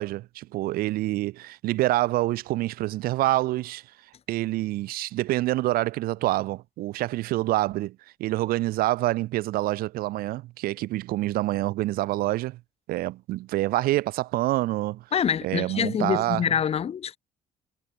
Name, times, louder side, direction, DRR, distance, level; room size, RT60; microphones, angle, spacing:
voice 1, 0.0-3.8 4.3-12.6 12.9-15.0 15.4-16.5, right 17 dB, 80° right, 1.2 m, -26 dB
voice 2, 15.1-17.2, left 8 dB, 40° left, 2.5 m, -26 dB
cardioid pair, 125°, 15 cm